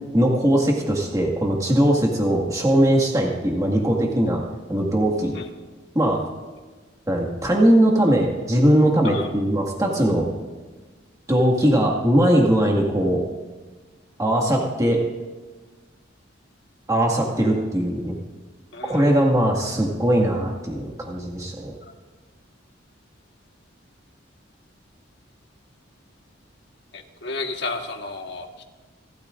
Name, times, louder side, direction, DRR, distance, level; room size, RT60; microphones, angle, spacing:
voice 1, 0.1-4.4 4.7-5.3 5.9-6.2 7.1-10.3 11.3-13.2 14.2-15.0 16.9-18.2 18.8-21.7, right 1 dB, 15° right, -1 dB, 1.9 m, -20 dB
voice 2, 18.7-19.1 26.9-28.6, left 3 dB, 60° left, 3 dB, 1.5 m, -32 dB
28.5 x 13.5 x 2.5 m, 1.3 s
head